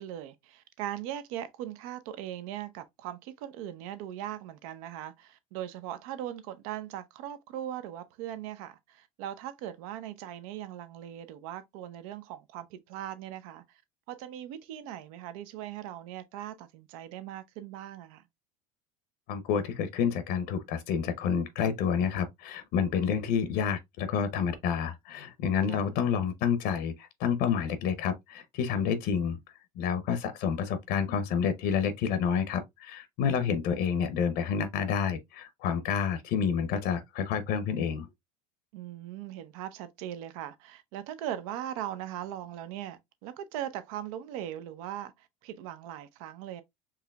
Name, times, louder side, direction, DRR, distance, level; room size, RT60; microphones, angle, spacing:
voice 1, 0.0-13.8 14.1-18.2 25.7-25.8 33.2-33.5 38.7-46.6, right 11 dB, 70° right, 0.6 m, -39 dB
voice 2, 19.3-29.4 29.8-38.1, left 7 dB, 60° left, 0.7 m, -29 dB
4.7 x 2.9 x 2.3 m
hypercardioid pair, 85°, 19 cm